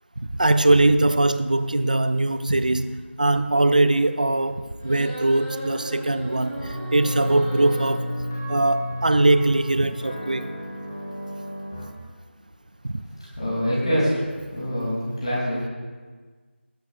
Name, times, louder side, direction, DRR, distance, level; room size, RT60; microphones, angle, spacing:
voice 1, 0.2-8.1 8.5-10.5 12.8-13.0, right 2 dB, 40° right, 12 dB, 0.4 m, -21 dB
sound 1, 4.8-7.8, right 1 dB, 15° right, 1.7 m, -36 dB
sound 2, 6.4-11.9, equal, 10° left, 1.0 m, -32 dB
voice 2, 13.4-15.7, equal, 30° left, -7 dB, 2.8 m, -25 dB
19.0 x 9.9 x 2.4 m, 1.4 s
figure-of-eight pair, 180°, 7 cm